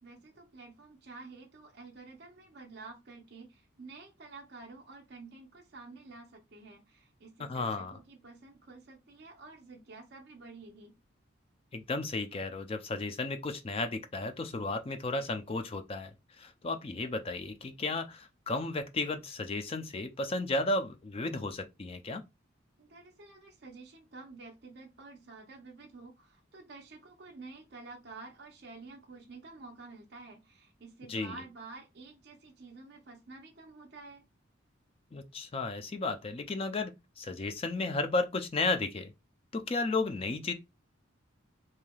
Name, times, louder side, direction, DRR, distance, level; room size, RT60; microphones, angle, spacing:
voice 1, 0.0-11.0 22.8-34.2, right 3 dB, 55° right, 0.6 m, -50 dB
voice 2, 7.4-7.9 11.7-22.2 31.1-31.4 35.1-36.9 37.2-39.1 39.5-40.5, left 3 dB, 30° left, 0.4 m, -33 dB
3.1 x 2.8 x 2.3 m
head